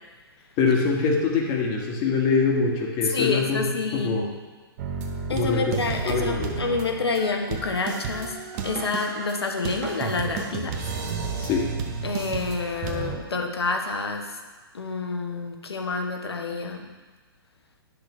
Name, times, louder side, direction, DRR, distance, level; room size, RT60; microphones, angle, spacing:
voice 1, 0.6-4.3 5.3-5.6 6.0-6.5 11.4-11.6, left 4 dB, 30° left, 0 dB, 1.4 m, -24 dB
voice 2, 3.0-4.3 5.3-8.4 8.6-10.8 12.0-14.3 14.7-16.9, left 4 dB, 80° left, 4 dB, 1.1 m, -28 dB
sound 1, 4.8-13.2, right 5 dB, 40° right, 0.9 m, -32 dB
9.9 x 5.9 x 3.2 m, 1.3 s
hypercardioid pair, 130°, 13 cm